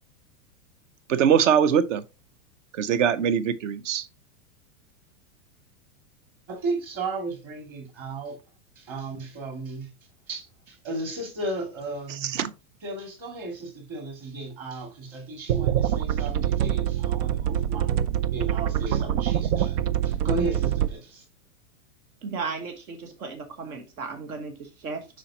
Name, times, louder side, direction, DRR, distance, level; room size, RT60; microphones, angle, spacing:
voice 1, 1.1-2.0 2.7-4.1 12.1-12.5, right 8 dB, 55° right, 0.7 m, -22 dB
voice 2, 6.5-8.4 8.8-9.9 10.3-12.4 12.8-17.9 18.3-19.8 20.0-21.2, right 2 dB, 30° right, 2.5 m, -34 dB
sound 1, 15.5-20.9, right 10 dB, 90° right, 0.7 m, -25 dB
voice 3, 22.2-25.1, right 4 dB, 70° right, 1.5 m, -35 dB
7.5 x 5.0 x 2.9 m
supercardioid pair, 175°, 45 cm